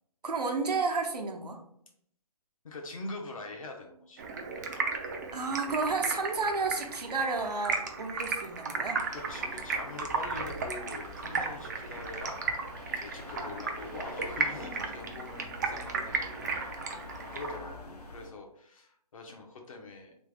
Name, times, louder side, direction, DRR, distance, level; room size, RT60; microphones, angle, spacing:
voice 1, 0.2-1.6 5.3-9.0, right 4 dB, 85° right, 2 dB, 0.9 m, -31 dB
voice 2, 2.6-4.2 9.1-12.4 12.9-16.5 16.8-20.1, left 3 dB, 60° left, 2 dB, 0.9 m, -44 dB
Stream, 4.2-17.6, right 4 dB, 30° right, 0.4 m, -35 dB
sound 1, 9.0-18.3, left 2 dB, 85° left, 1.0 m, -46 dB
3.4 x 3.1 x 3.4 m, 0.69 s
hypercardioid pair, 155°, 20 cm